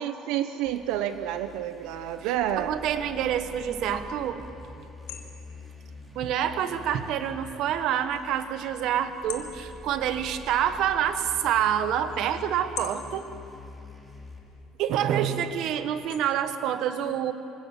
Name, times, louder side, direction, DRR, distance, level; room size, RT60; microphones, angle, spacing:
voice 1, 0.0-2.8, right 11 dB, 90° right, 10 dB, 0.9 m, -29 dB
sound 1, 0.6-14.4, left 1 dB, 5° right, 3.0 m, -46 dB
sound 2, 1.9-16.6, left 10 dB, 85° left, 2.6 m, -48 dB
voice 2, 2.2-4.4 6.1-13.3 14.8-17.3, right 9 dB, 55° right, 10 dB, 1.4 m, -27 dB
27.0 x 25.5 x 7.4 m, 2.8 s
cardioid pair, 180°, 0 cm